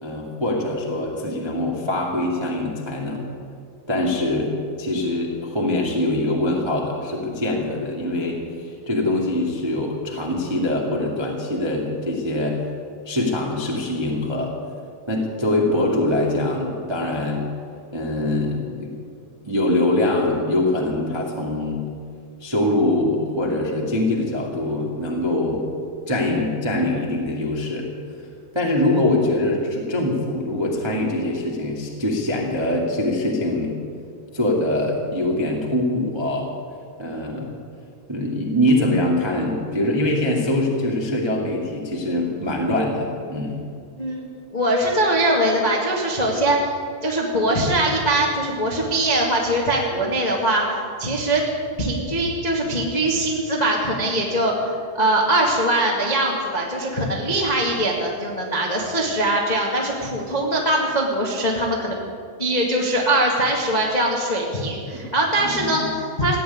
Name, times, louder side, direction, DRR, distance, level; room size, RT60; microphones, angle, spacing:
voice 1, 0.0-3.2 3.9-4.5 4.8-12.6 13.0-14.5 15.1-17.4 17.9-18.9 19.4-21.8 22.4-25.6 26.1-27.9 28.5-33.8 34.3-36.5 37.0-37.5 38.1-43.6 65.4-65.9, left 1 dB, 15° right, -1 dB, 1.0 m, -23 dB
voice 2, 44.0-46.7 47.0-51.4 51.8-62.0 62.4-66.4, right 1 dB, 20° left, -2 dB, 1.0 m, -22 dB
16.0 x 9.2 x 9.5 m, 2.3 s
omnidirectional pair, 4.2 m